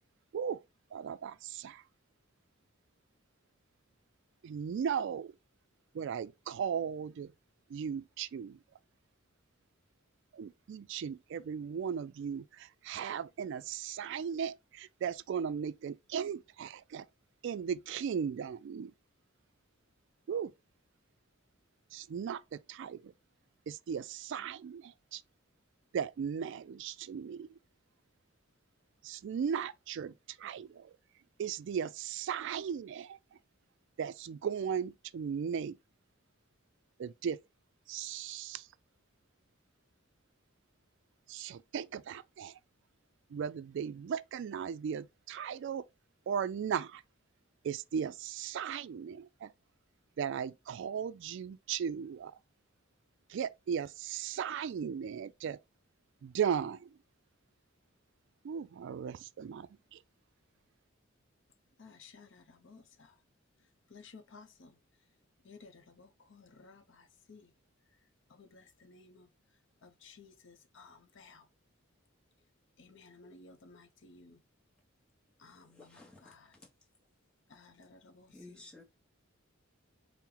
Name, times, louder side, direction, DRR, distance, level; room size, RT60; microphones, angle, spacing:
voice 1, 0.9-1.8 4.4-5.3 5.9-7.3 7.7-8.6 10.3-17.1 17.4-18.9 20.3-20.5 21.9-23.1 23.7-25.2 25.9-27.6 29.0-30.9 31.4-33.2 34.0-35.8 37.0-37.4 37.9-38.7 41.3-42.6 43.3-45.8 46.3-47.0 47.6-49.5 50.2-52.3 53.3-55.6 56.2-57.0 58.4-60.0, right 7 dB, 60° right, 0.3 m, -37 dB
voice 2, 61.8-63.1 63.9-64.7 65.4-67.5 68.4-69.3 69.8-71.4 72.8-74.4 75.4-76.5 77.5-78.6, left 4 dB, 60° left, 0.6 m, -56 dB
voice 3, 75.7-76.3 78.3-78.8, left 2 dB, 5° left, 0.9 m, -53 dB
4.3 x 2.0 x 3.8 m
head